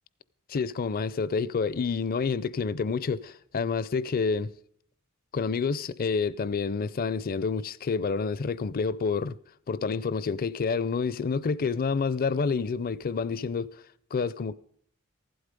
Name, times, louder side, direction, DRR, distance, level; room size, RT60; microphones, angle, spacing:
voice 1, 0.5-4.5 5.3-9.4 9.7-13.7 14.1-14.5, left 5 dB, 45° left, 0.4 m, -28 dB
15.5 x 11.5 x 5.2 m
head